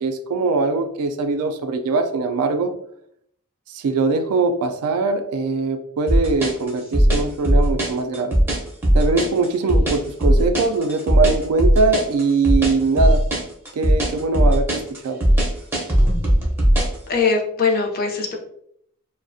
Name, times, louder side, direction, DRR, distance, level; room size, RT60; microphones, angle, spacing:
voice 1, 0.0-2.7 3.7-8.4 8.9-13.2 13.7-15.2, right 3 dB, 80° right, 7 dB, 0.3 m, -21 dB
sound 1, 6.1-17.0, equal, 10° right, 0.5 m, -18 dB
voice 2, 17.1-18.3, left 4 dB, 40° left, 1 dB, 0.4 m, -21 dB
2.4 x 2.0 x 2.5 m, 0.69 s
head